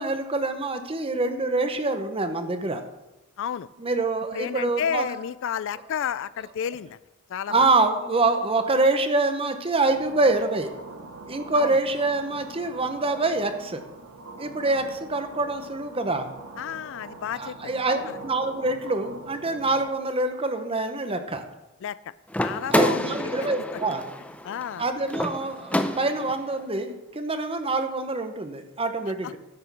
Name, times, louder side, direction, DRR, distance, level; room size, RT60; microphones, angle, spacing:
voice 1, 0.0-2.8 3.8-5.1 7.5-10.7 11.2-13.8 14.4-16.3 17.4-21.4 22.7-24.0 24.8-29.4, right 2 dB, 25° right, 8 dB, 1.0 m, -25 dB
voice 2, 3.4-3.7 4.3-7.0 7.3-7.6 11.6-11.8 16.6-17.6 18.1-18.2 21.8-22.1 22.4-23.3 24.4-24.9 29.2-29.3, left 8 dB, 60° left, 17 dB, 0.4 m, -31 dB
sound 1, 9.9-19.9, right 2 dB, 85° right, 1.2 m, -43 dB
sound 2, 22.3-26.4, left 1 dB, 5° left, 0.6 m, -28 dB
10.5 x 6.3 x 7.0 m, 0.98 s
head